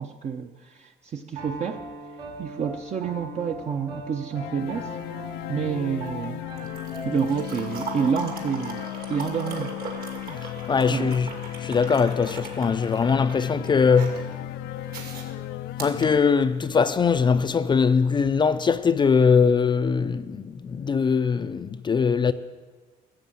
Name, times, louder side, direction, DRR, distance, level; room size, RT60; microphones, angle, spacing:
voice 1, 0.0-1.8 2.4-4.9 5.5-6.4 7.0-9.7 10.9-11.1, right 6 dB, 40° right, 0.7 m, -28 dB
Piano, 1.3-8.2, right 1 dB, 90° right, 5.3 m, -40 dB
sound 1, 4.3-16.2, left 14 dB, 85° left, 0.4 m, -35 dB
sound 2, 4.6-16.9 18.1-18.3, right 5 dB, 65° right, 2.4 m, -40 dB
voice 2, 10.7-11.3 11.6-14.3 15.8-22.3, left 5 dB, 25° left, 0.4 m, -21 dB
15.0 x 7.5 x 7.5 m
cardioid pair, 110°, 17 cm